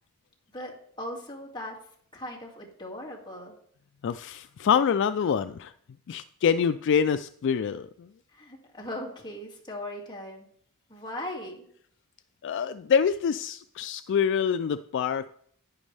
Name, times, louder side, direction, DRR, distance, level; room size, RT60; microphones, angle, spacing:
voice 1, 0.5-1.8 2.1-3.5 8.3-10.5 10.9-11.7, left 1 dB, 20° left, -2 dB, 2.2 m, -38 dB
voice 2, 4.0-5.7 6.1-8.1 12.4-15.3, left 7 dB, 55° left, 13 dB, 0.3 m, -26 dB
10.5 x 9.9 x 3.3 m, 0.64 s
head